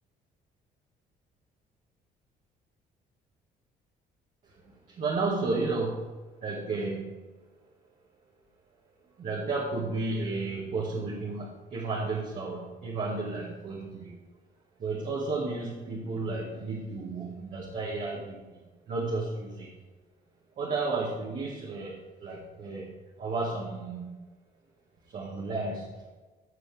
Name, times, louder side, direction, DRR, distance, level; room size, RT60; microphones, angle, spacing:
voice 1, 4.4-6.1 6.4-7.2 9.2-14.2 14.8-18.6 18.9-19.7 20.5-24.3 25.0-26.1, right 3 dB, 50° right, -5 dB, 2.0 m, -33 dB
14.5 x 6.9 x 3.6 m, 1.3 s
cardioid pair, 110°, 17 cm